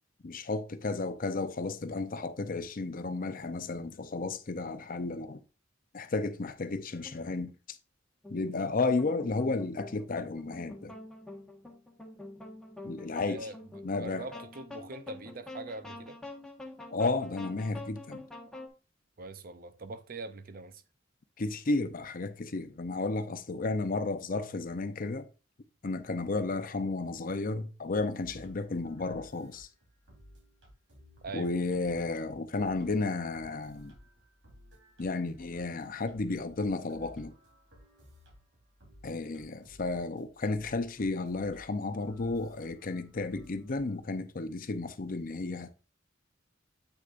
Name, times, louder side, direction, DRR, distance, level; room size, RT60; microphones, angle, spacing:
voice 1, 0.2-5.4 5.9-7.5 8.3-10.9 12.8-13.5 13.8-14.3 16.9-18.2 21.4-25.3 25.8-29.7 31.3-33.9 35.0-37.3 39.0-45.7, left 3 dB, 45° left, 0.6 m, -33 dB
sound 1, 7.0-7.4 8.2-18.7, left 2 dB, 5° left, 1.4 m, -47 dB
voice 2, 13.3-13.6 13.9-16.2 19.2-20.8 31.2-31.5, right 3 dB, 50° right, 0.6 m, -42 dB
sound 2, 27.9-44.0, equal, 80° right, 3.7 m, -57 dB
8.1 x 6.5 x 2.5 m
head